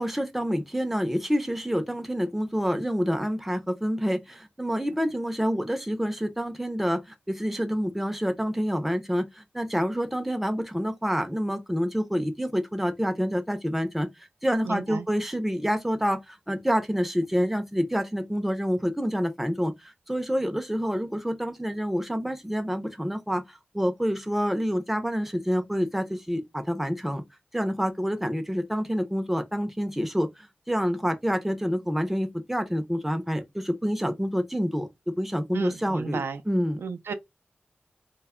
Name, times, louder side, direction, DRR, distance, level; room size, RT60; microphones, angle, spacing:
voice 1, 0.0-27.2 27.5-36.8, equal, 5° right, 0.5 m, -27 dB
voice 2, 14.6-15.1 35.5-36.4 36.8-37.1, right 5 dB, 85° right, 0.3 m, -33 dB
2.1 x 2.1 x 3.5 m
wide cardioid pair, 85°, 4 cm